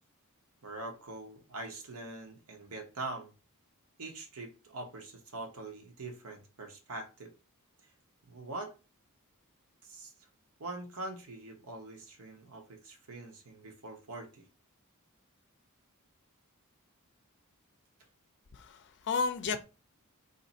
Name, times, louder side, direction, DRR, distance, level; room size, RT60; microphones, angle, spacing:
voice 1, 0.6-3.3 4.0-7.3 8.3-8.7 9.8-10.1 10.6-14.4, right 2 dB, 85° right, 1.0 m, -43 dB
voice 2, 18.5-19.6, left 4 dB, 55° left, 0.5 m, -33 dB
2.7 x 2.6 x 4.0 m
head